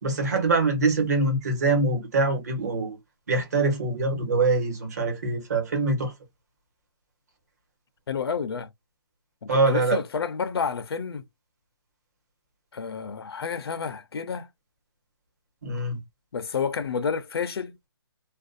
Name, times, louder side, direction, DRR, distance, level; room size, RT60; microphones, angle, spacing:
voice 1, 0.0-3.0 3.3-6.1 9.5-10.0 15.6-16.0, right 3 dB, 40° right, 1.1 m, -24 dB
voice 2, 8.1-8.7 9.4-11.2 12.7-14.5 16.3-17.8, left 6 dB, 75° left, 0.5 m, -30 dB
2.4 x 2.2 x 2.4 m
hypercardioid pair, 175°, 13 cm